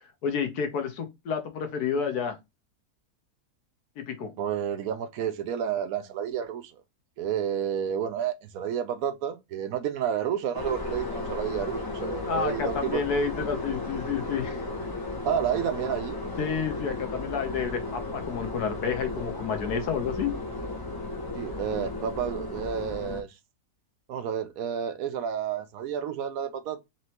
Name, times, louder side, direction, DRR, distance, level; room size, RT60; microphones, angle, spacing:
voice 1, 0.2-2.4 4.0-4.3 12.3-14.7 16.4-20.4, left 6 dB, 75° left, 1.5 m, -30 dB
voice 2, 4.4-6.8 7.2-13.0 15.3-16.2 21.3-23.4 24.1-26.8, right 8 dB, 70° right, 1.0 m, -30 dB
sound 1, 10.5-23.2, left 2 dB, 25° left, 0.5 m, -35 dB
4.3 x 3.3 x 2.9 m
omnidirectional pair, 1.7 m